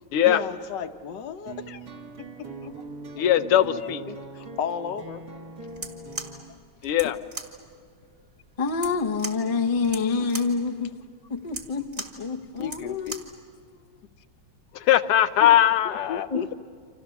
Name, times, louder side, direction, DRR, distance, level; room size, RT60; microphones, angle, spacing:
voice 1, 0.2-1.9 2.6-2.7 3.7-5.2 10.2-10.3 11.8-11.9 12.6-13.2 15.4-15.5 15.8-16.5, left 7 dB, 60° left, 1.4 m, -33 dB
sound 1, 1.5-6.5, right 3 dB, 50° right, 2.7 m, -41 dB
voice 2, 3.2-4.0 6.8-7.2 14.7-16.3, left 11 dB, 85° left, 1.8 m, -20 dB
sound 2, 5.7-13.4, right 2 dB, 30° right, 2.4 m, -39 dB
voice 3, 8.6-10.9 11.3-11.8 12.2-13.2 16.3-16.4, left 4 dB, 35° left, 0.5 m, -27 dB
29.5 x 26.0 x 7.1 m
omnidirectional pair, 2.4 m